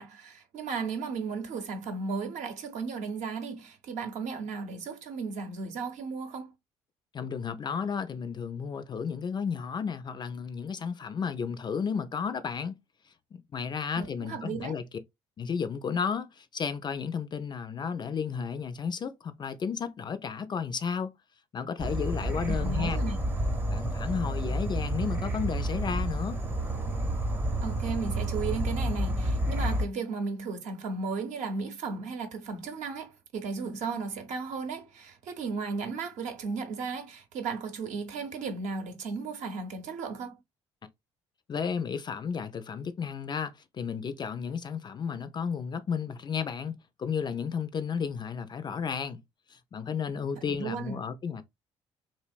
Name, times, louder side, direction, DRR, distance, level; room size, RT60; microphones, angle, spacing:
voice 1, 0.0-6.5 14.0-14.8 22.5-23.2 27.6-40.4 50.4-51.0, right 4 dB, 60° right, 0.7 m, -35 dB
voice 2, 7.1-12.8 13.3-14.8 15.4-21.1 21.5-23.0 23.7-26.4 41.5-49.2 49.5-51.4, left 6 dB, 30° left, 0.3 m, -33 dB
Insect / Frog, 21.8-29.9, right 1 dB, 15° right, 0.6 m, -30 dB
2.7 x 2.0 x 2.4 m
hypercardioid pair, 55°, 14 cm